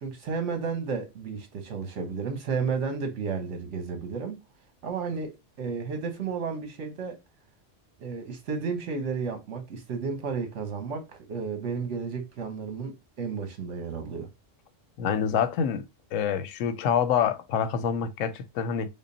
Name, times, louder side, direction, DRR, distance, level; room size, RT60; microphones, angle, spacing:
voice 1, 0.0-4.4 4.8-7.2 8.0-12.9 13.2-14.3, right 5 dB, 70° right, 1.3 m, -32 dB
voice 2, 15.0-15.8 16.1-18.9, left 7 dB, 90° left, 1.0 m, -26 dB
3.7 x 2.0 x 3.8 m
omnidirectional pair, 1.3 m